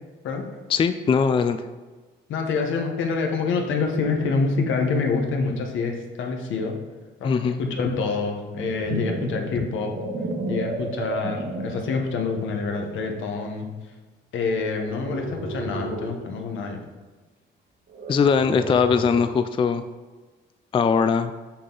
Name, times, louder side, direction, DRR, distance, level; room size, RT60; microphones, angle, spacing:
voice 1, 0.7-1.6 7.2-7.6 18.1-19.8 20.7-21.3, left 6 dB, 25° left, 10 dB, 0.3 m, -20 dB
voice 2, 2.3-6.7 7.2-9.9 10.5-13.9 14.3-16.8, left 4 dB, 80° left, 2 dB, 1.2 m, -26 dB
sound 1, 8.3-12.0 12.6-12.9 14.7-16.2 17.9-19.3, right 2 dB, 55° right, 1.3 m, -32 dB
6.6 x 5.6 x 3.9 m, 1.3 s
cardioid pair, 90°, 20 cm